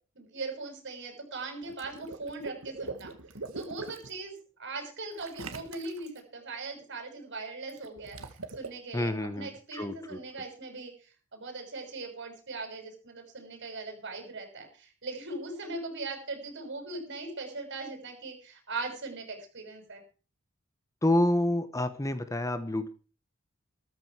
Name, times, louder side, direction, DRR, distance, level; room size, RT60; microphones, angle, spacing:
voice 1, 0.1-3.1 3.5-4.3 4.6-20.0, right 3 dB, 60° right, 4 dB, 6.4 m, -40 dB
Water / Liquid, 1.6-4.1 5.2-6.2 7.7-8.7, right 3 dB, 80° right, 1.9 m, -42 dB
voice 2, 8.9-10.2 21.0-22.9, left 1 dB, 15° left, 11 dB, 1.0 m, -28 dB
14.0 x 14.0 x 4.8 m, 0.38 s
head